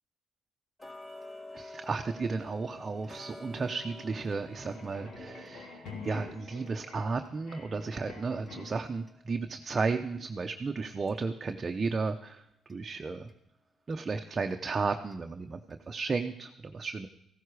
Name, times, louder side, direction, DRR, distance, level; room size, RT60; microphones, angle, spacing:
Tick-tock, 0.8-11.6 12.1-12.2 12.7-12.8 13.3-13.4 13.9-14.0 14.5-14.6 15.1-15.2 15.7-15.8, left 2 dB, 15° left, 1.9 m, -51 dB
voice 1, 1.5-12.4 12.7-13.3 13.9-17.1, right 4 dB, 35° right, 5 dB, 0.7 m, -34 dB
sound 1, 2.5-8.9, left 3 dB, 80° left, 3.2 m, -48 dB
15.0 x 12.5 x 4.8 m, 0.78 s
cardioid pair, 90°, 0 cm